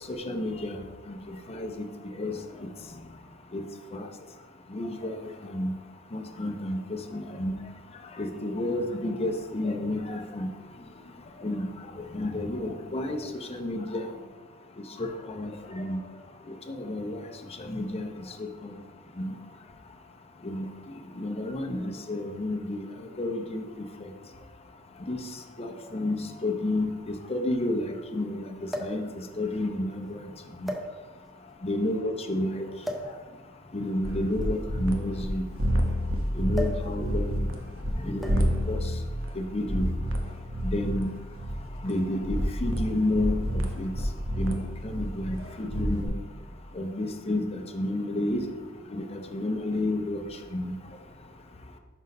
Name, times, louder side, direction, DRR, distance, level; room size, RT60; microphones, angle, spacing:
voice 1, 0.1-0.8 1.5-1.7 2.2-2.4 3.5-3.6 3.9-4.1 4.7-5.2 5.5-5.7 6.1-6.8 7.1-7.5 8.2-10.5 11.4-11.7 12.1-13.2 13.5-14.1 15.0-15.1 15.4-16.0 16.8-17.2 17.6-18.1 18.6-18.7 19.2-19.3 20.4-20.7 21.2-22.8 23.2-23.6 25.1-25.2 25.6-26.2 26.4-26.9 27.3-28.5 28.8-29.0 29.4-30.2 31.6-32.6 33.7-35.4 36.4-37.4 38.0-38.8 39.4-39.9 40.6-41.1 41.8-43.9 44.4-46.1 46.8-48.4 48.9-49.0 49.3-50.2 50.5-50.7, left 1 dB, 30° left, 4 dB, 0.7 m, -30 dB
sound 1, 25.0-25.1 26.1-26.2 26.5-26.6 28.7-29.1 29.9-30.1 30.6-31.3 32.8-33.2 34.3-35.9 36.5-36.9 37.2-37.5 38.2-38.6 39.6-39.8, equal, ahead, 0.8 m, -36 dB
sound 2, 34.0-35.3 35.6-37.9 38.3-46.1, equal, 85° right, 0.9 m, -29 dB
6.2 x 5.3 x 5.2 m, 1.3 s
head